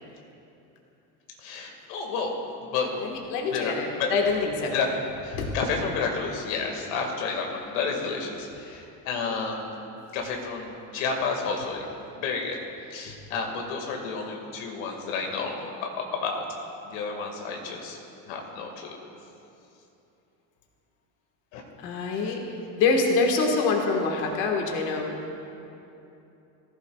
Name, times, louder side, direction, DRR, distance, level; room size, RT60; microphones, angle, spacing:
voice 1, 1.4-2.3 2.7-3.2 3.5-3.7 4.0-4.1 4.7-9.7 10.1-11.8 12.2-12.6 12.9-16.4 16.8-18.0 18.3-19.0 21.5-21.6, left 4 dB, 90° left, 1 dB, 1.9 m, -31 dB
voice 2, 3.0-4.8 5.3-5.5 21.8-22.4 22.8-25.2, left 4 dB, 50° left, 1 dB, 1.5 m, -25 dB
18.5 x 15.0 x 2.3 m, 2.9 s
cardioid pair, 180°, 39 cm